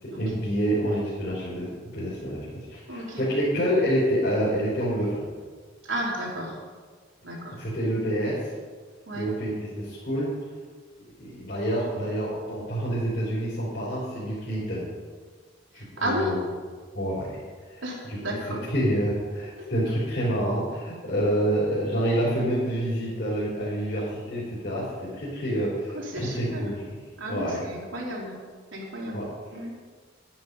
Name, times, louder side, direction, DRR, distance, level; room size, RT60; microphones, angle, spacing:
voice 1, 0.0-5.3 7.6-8.5 9.1-10.3 11.2-14.9 15.7-16.4 16.9-18.2 18.7-26.8 27.3-27.6 29.1-29.3, equal, 55° left, -10 dB, 4.1 m, -27 dB
voice 2, 2.9-3.2 5.8-6.6 7.2-7.6 9.1-9.3 15.7-16.3 17.8-18.6 19.6-19.7 25.9-26.7 27.2-28.4 28.7-29.7, right 1 dB, 85° right, -3 dB, 3.3 m, -33 dB
10.5 x 10.5 x 5.4 m, 1.5 s
head